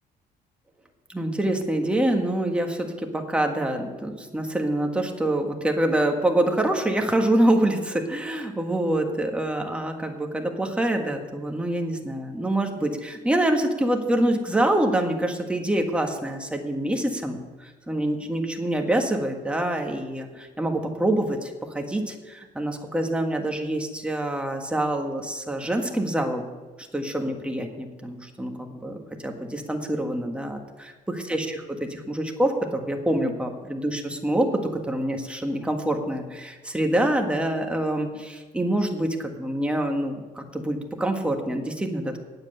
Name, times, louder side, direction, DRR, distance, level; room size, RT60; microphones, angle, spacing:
voice 1, 1.1-17.4 17.9-26.5 26.9-42.2, right 1 dB, 5° right, 3 dB, 1.6 m, -26 dB
8.9 x 7.9 x 9.0 m, 1.3 s
cardioid pair, 110°, 17 cm